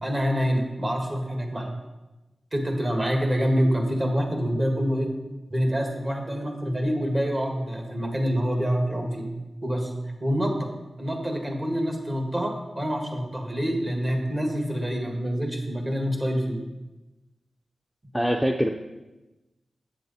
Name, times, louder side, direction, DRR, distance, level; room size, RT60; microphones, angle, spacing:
voice 1, 0.0-1.7 2.5-5.1 5.5-9.3 9.6-9.9 10.2-10.7 11.0-16.6, equal, 35° right, 2 dB, 1.8 m, -26 dB
voice 2, 18.1-18.7, equal, 5° right, 4 dB, 0.5 m, -23 dB
7.7 x 7.4 x 4.2 m, 1.1 s
cardioid pair, 60°, 0 cm